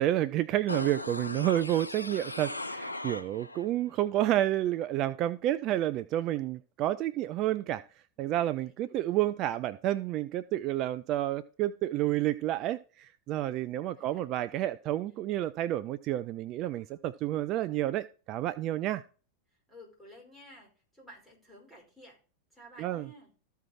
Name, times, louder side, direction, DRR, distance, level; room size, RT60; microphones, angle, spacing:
voice 1, 0.0-7.8 8.2-19.0 22.8-23.0, right 13 dB, 35° right, 14 dB, 0.4 m, -30 dB
sound 1, 0.7-3.7 4.0-4.1, left 2 dB, 85° left, 0.4 m, -38 dB
voice 2, 8.2-9.4 13.5-14.2 15.0-15.2 19.5-22.2 22.5-23.3, equal, 5° left, -1 dB, 5.3 m, -55 dB
14.0 x 4.6 x 4.3 m, 0.37 s
figure-of-eight pair, 90°, 0 cm